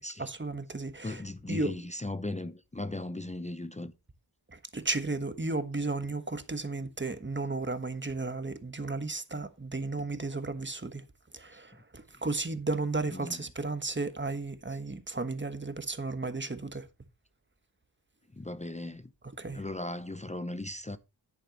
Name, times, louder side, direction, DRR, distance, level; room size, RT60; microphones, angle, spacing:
voice 1, 0.0-1.2 1.5-1.7 4.5-11.0 11.3-16.9 19.4-19.6, right 3 dB, 25° right, 1.3 m, -34 dB
voice 2, 1.0-3.9 11.5-11.6 13.1-13.5 14.7-14.8 18.3-19.1 19.5-21.0, left 2 dB, 15° left, 0.7 m, -37 dB
10.0 x 9.1 x 3.0 m
wide cardioid pair, 70°, 43 cm